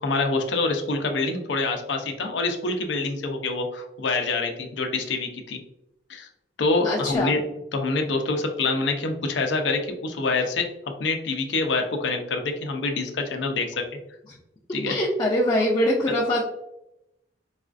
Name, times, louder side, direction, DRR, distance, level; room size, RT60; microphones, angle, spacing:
voice 1, 0.0-5.6 6.1-6.3 6.6-7.4 7.7-10.7 11.0-13.8 14.7-15.0, left 3 dB, 85° left, 4 dB, 0.5 m, -26 dB
voice 2, 6.8-7.3 14.8-16.4, left 1 dB, 25° left, -4 dB, 0.4 m, -23 dB
4.1 x 2.4 x 2.4 m, 0.86 s
head